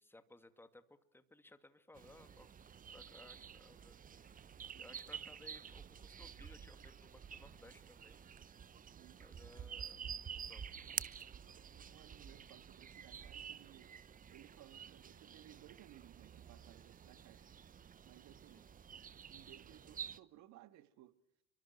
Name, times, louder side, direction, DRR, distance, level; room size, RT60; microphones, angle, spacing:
voice 1, 0.0-2.5 2.9-4.3 4.8-8.2 9.2-10.0 10.2-10.8 18.5-18.6, left 2 dB, 5° left, 2.3 m, -61 dB
sound 1, 1.9-20.2, right 7 dB, 25° right, 1.0 m, -50 dB
voice 2, 8.8-9.4 11.4-14.0 14.3-17.5 18.0-18.7 19.3-21.2, right 14 dB, 50° right, 1.8 m, -61 dB
30.0 x 24.5 x 6.0 m
figure-of-eight pair, 70°, 36 cm